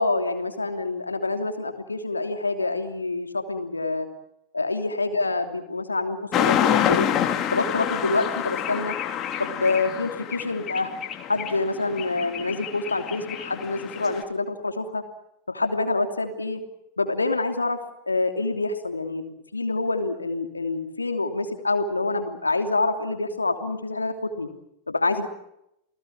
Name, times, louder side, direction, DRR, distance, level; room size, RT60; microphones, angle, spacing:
voice 1, 0.0-4.1 4.5-7.1 7.5-8.9 9.4-10.9 11.3-15.0 15.5-16.6 17.0-17.8 18.1-24.5 24.9-25.3, left 3 dB, 80° left, 6 dB, 2.9 m, -26 dB
sound 1, 6.3-14.2, left 10 dB, 30° left, 3.2 m, -27 dB
29.5 x 19.0 x 7.4 m, 0.82 s
figure-of-eight pair, 90°, 0 cm